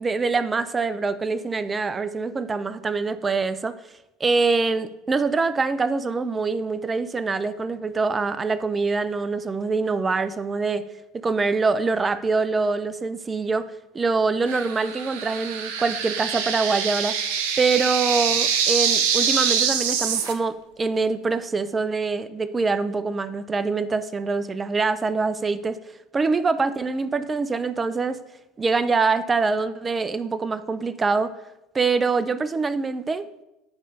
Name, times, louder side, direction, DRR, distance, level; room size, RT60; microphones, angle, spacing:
voice 1, 0.0-3.8 4.2-10.8 11.2-13.7 13.9-17.2 17.6-25.8 26.1-28.2 28.6-31.3 31.7-33.3, right 4 dB, 25° right, 14 dB, 0.5 m, -24 dB
sound 1, 14.5-20.3, right 7 dB, 75° right, 0.7 m, -24 dB
8.9 x 3.3 x 5.3 m, 0.95 s
hypercardioid pair, 75°, 0 cm